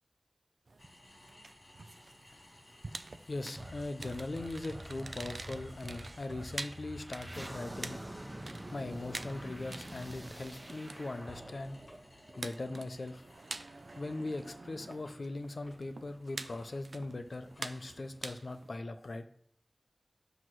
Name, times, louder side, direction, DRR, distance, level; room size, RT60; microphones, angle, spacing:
sound 1, 0.7-18.8, right 3 dB, 85° right, 0.4 m, -48 dB
sound 2, 0.8-18.5, left 1 dB, 60° left, 1.8 m, -60 dB
voice 1, 3.3-8.0 8.7-11.8 12.4-13.2 14.0-19.3, left 2 dB, 80° left, 8 dB, 0.6 m, -40 dB
sound 3, 3.6-12.9, right 1 dB, 30° right, 0.9 m, -46 dB
7.9 x 3.0 x 6.1 m, 0.62 s
wide cardioid pair, 45°, 0 cm